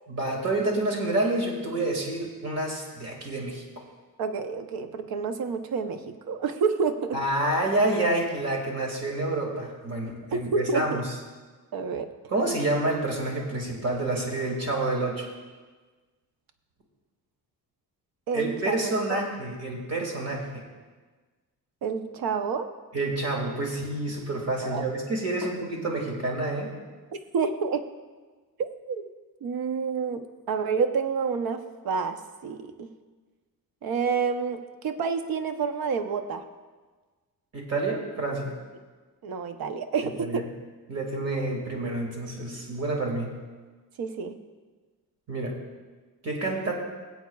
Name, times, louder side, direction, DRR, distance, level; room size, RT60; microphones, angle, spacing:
voice 1, 0.1-3.6 7.1-10.5 10.7-11.0 12.3-15.3 18.3-20.6 22.9-26.7 37.5-38.6 40.2-40.4 40.9-43.3 45.3-45.6 46.2-46.7, right 2 dB, 45° right, 0 dB, 2.1 m, -28 dB
voice 2, 4.2-7.2 10.5-11.0 11.7-12.1 18.3-19.2 21.8-22.7 24.6-24.8 27.1-27.8 28.6-29.1 29.4-32.9 33.8-36.5 39.2-40.4 44.0-44.4, right 5 dB, 80° right, 8 dB, 0.8 m, -29 dB
21.5 x 8.0 x 2.3 m, 1.4 s
wide cardioid pair, 175°, 35 cm